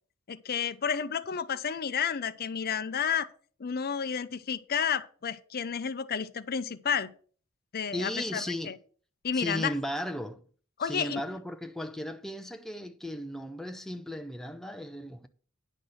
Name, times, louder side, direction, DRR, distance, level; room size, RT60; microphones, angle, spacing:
voice 1, 0.3-3.3 3.6-7.1 7.7-8.7 9.2-9.7 10.8-11.2, left 7 dB, 45° left, 0.6 m, -31 dB
voice 2, 7.9-8.8 9.3-10.4 10.8-15.3, equal, ahead, 0.5 m, -36 dB
9.9 x 6.0 x 6.3 m
head